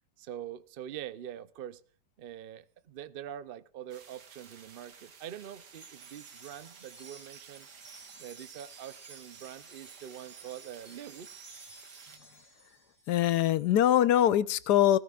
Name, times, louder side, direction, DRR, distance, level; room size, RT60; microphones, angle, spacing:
voice 1, 0.2-1.8 2.2-7.7 8.2-11.3, right 10 dB, 70° right, 0.5 m, -44 dB
sound 1, 3.9-12.2, right 6 dB, 90° right, 2.0 m, -54 dB
Wind chime, 5.6-13.1, right 4 dB, 45° right, 2.5 m, -53 dB
voice 2, 13.1-15.0, left 11 dB, 80° left, 1.3 m, -23 dB
17.0 x 15.5 x 2.4 m
omnidirectional pair, 1.7 m